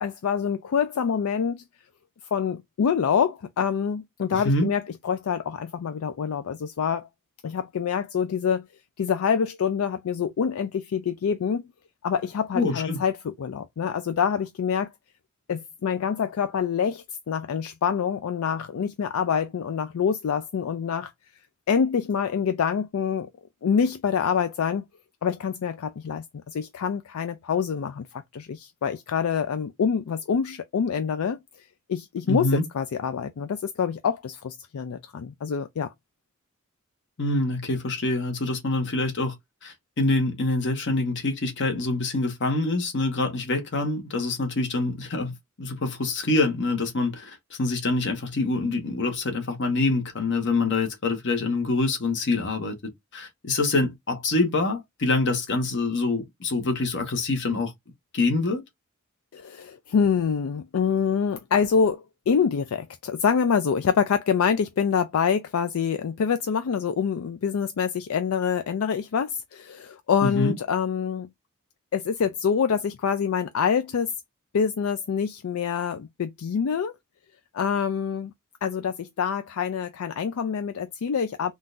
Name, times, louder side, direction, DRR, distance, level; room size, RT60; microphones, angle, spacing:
voice 1, 0.0-1.6 2.3-7.1 7.4-8.7 9.0-11.6 12.0-14.9 15.5-21.1 21.7-23.3 23.6-24.8 25.2-31.4 31.9-35.9 59.3-71.3 71.9-74.1 74.5-76.9 77.5-78.3 78.6-81.5, left 7 dB, 80° left, 0.4 m, -26 dB
voice 2, 4.3-4.7 12.5-13.0 32.3-32.6 37.2-39.3 39.6-52.8 53.1-57.7 58.1-58.6 70.2-70.5, left 2 dB, 60° left, 1.1 m, -25 dB
3.7 x 2.4 x 2.5 m
head